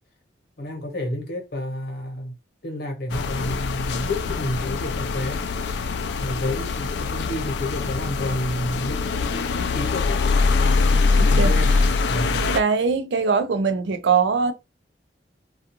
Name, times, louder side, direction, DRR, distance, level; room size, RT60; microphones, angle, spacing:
voice 1, 0.6-2.3 2.6-5.4 6.2-11.8 12.1-12.4, left 1 dB, 60° left, 0.9 m, -30 dB
sound 1, 3.1-12.6, left 4 dB, 75° left, 0.3 m, -23 dB
voice 2, 11.2-11.5 12.5-14.5, right 5 dB, 80° right, 0.4 m, -21 dB
2.4 x 2.3 x 2.9 m
head